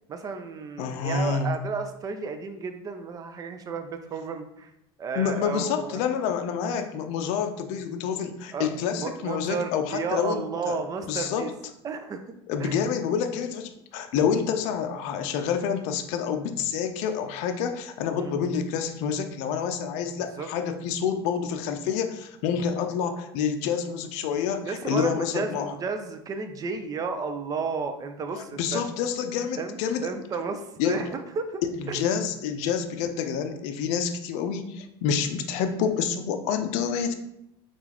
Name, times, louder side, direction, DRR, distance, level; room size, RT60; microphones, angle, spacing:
voice 1, 0.1-4.7 5.0-6.0 8.5-8.7 9.0-11.5 11.8-12.2 12.6-12.8 18.2-18.3 20.4-20.5 24.6-28.8 29.5-31.6 31.9-32.0, right 5 dB, 30° right, 7 dB, 0.4 m, -32 dB
voice 2, 0.8-1.6 5.2-10.8 11.1-11.5 12.5-25.7 28.3-30.1 30.8-30.9 31.8-37.1, left 7 dB, 60° left, 7 dB, 0.5 m, -28 dB
3.7 x 2.4 x 2.9 m, 0.80 s
supercardioid pair, 105°, 13 cm